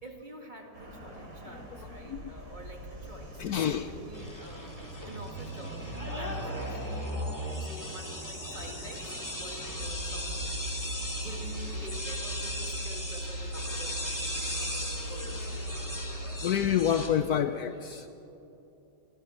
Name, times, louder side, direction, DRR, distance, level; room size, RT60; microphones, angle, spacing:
voice 1, 0.0-15.9, right 1 dB, 25° right, 1 dB, 2.3 m, -48 dB
sound 1, 0.7-17.1, right 1 dB, 65° right, 3.7 m, -43 dB
voice 2, 3.4-3.9 16.4-18.1, left 9 dB, 65° left, 10 dB, 1.1 m, -28 dB
sound 2, 4.1-17.1, left 1 dB, 10° left, 2.2 m, -39 dB
sound 3, 9.7-16.6, right 1 dB, 90° right, 3.3 m, -38 dB
29.5 x 22.5 x 4.4 m, 2.9 s
omnidirectional pair, 1.9 m